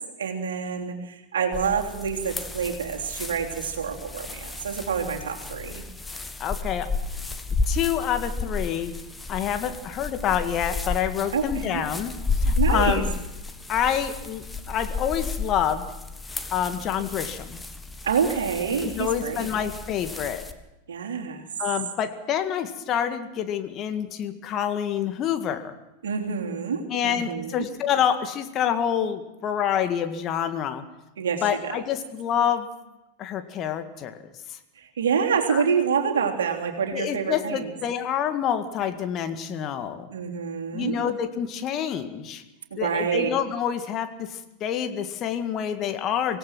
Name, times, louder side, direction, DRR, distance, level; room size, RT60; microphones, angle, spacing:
voice 1, 0.2-5.8 11.3-11.8 12.6-13.0 18.0-19.5 20.9-21.4 26.0-27.5 31.2-31.8 34.8-37.7 40.1-41.0 42.7-43.3, right 6 dB, 65° right, 2 dB, 3.4 m, -27 dB
sound 1, 1.5-20.5, left 3 dB, 10° left, 1.6 m, -32 dB
voice 2, 6.4-6.9 7.7-9.0 9.3-13.1 13.7-15.8 16.5-17.6 18.8-20.4 21.6-25.8 26.9-30.8 31.4-32.7 33.2-34.2 34.5-34.6 35.5-35.6 36.9-40.1 40.7-42.4 42.7-46.4, left 9 dB, 30° left, 8 dB, 1.9 m, -27 dB
25.5 x 18.0 x 6.2 m, 0.98 s
figure-of-eight pair, 90°, 0 cm